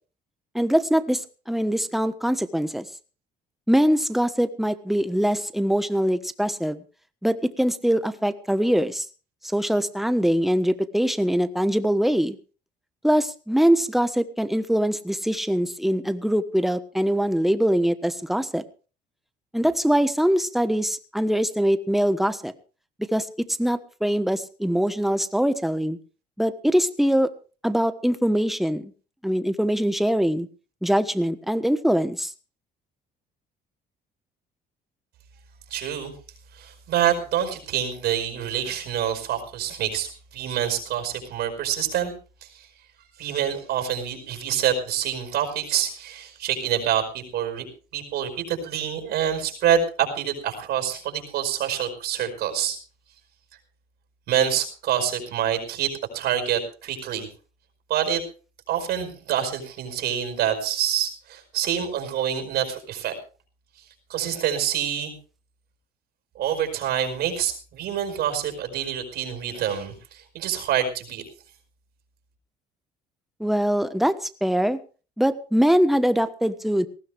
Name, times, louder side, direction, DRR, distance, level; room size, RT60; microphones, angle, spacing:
voice 1, 0.5-2.8 3.7-6.8 7.2-9.1 9.5-12.4 13.0-18.6 19.5-22.5 23.1-26.0 26.4-27.3 27.6-28.9 29.2-30.5 30.8-32.3 73.4-74.8 75.2-76.9, equal, ahead, 11 dB, 1.2 m, -23 dB
voice 2, 35.7-36.1 36.5-42.1 43.2-52.8 54.3-57.3 57.9-58.2 58.7-63.2 64.1-65.1 66.4-71.2, right 9 dB, 75° right, 6 dB, 5.2 m, -26 dB
19.0 x 15.5 x 3.5 m, 0.35 s
cardioid pair, 110°, 17 cm